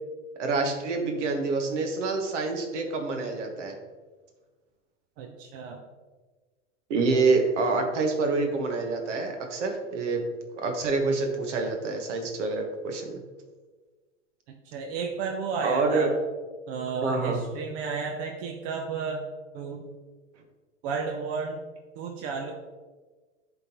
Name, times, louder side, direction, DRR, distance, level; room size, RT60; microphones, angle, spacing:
voice 1, 0.4-3.7 6.9-10.2 10.5-13.2 15.6-16.1 17.0-17.4, right 3 dB, 70° right, 4 dB, 1.4 m, -27 dB
voice 2, 5.2-5.8 14.5-16.1 16.7-19.3 19.5-20.0 20.8-21.6 21.9-22.5, right 5 dB, 50° right, 2 dB, 0.8 m, -33 dB
10.5 x 3.8 x 3.0 m, 1.3 s
hypercardioid pair, 120°, 37 cm